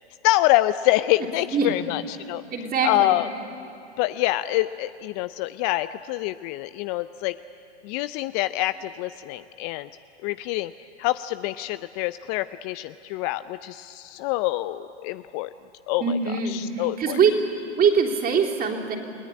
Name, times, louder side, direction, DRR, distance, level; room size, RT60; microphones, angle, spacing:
voice 1, 0.2-2.4 2.8-3.3 4.0-7.4 7.8-9.9 10.2-10.7 11.0-15.5 15.9-16.2 16.5-17.2, left 16 dB, 35° left, 14 dB, 0.5 m, -26 dB
voice 2, 2.5-3.2 16.0-17.3 17.8-19.0, right 6 dB, 25° right, 1 dB, 3.5 m, -23 dB
30.0 x 18.5 x 10.0 m, 2.7 s
hypercardioid pair, 115°, 34 cm